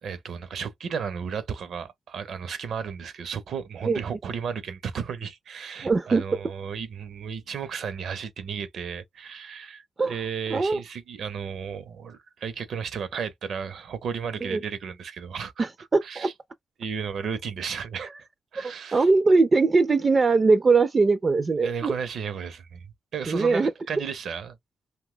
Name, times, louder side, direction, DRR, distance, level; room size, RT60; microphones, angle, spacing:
voice 1, 0.0-15.7 16.0-16.3 16.8-18.1 18.5-19.1 21.6-22.9 23.1-24.6, right 6 dB, 75° right, 0.6 m, -34 dB
voice 2, 5.8-6.2 10.0-10.2 10.5-10.8 14.4-14.6 15.6-16.3 18.6-21.9 23.3-23.7, right 3 dB, 40° right, 0.3 m, -21 dB
2.6 x 2.2 x 3.7 m
cardioid pair, 80°, 0 cm